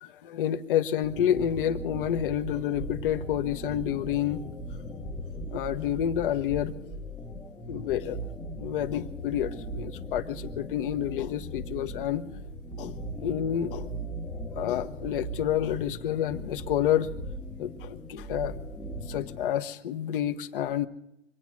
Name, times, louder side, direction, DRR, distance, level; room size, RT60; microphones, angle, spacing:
voice 1, 0.0-4.4 5.5-6.7 7.7-8.2 8.6-12.2 12.8-13.9 14.6-17.1 17.6-18.5 19.1-20.9, left 10 dB, 45° left, 10 dB, 1.2 m, -29 dB
sound 1, 1.0-19.5, right 1 dB, 5° left, 1.0 m, -39 dB
25.5 x 9.3 x 6.1 m, 0.83 s
hypercardioid pair, 130°, 38 cm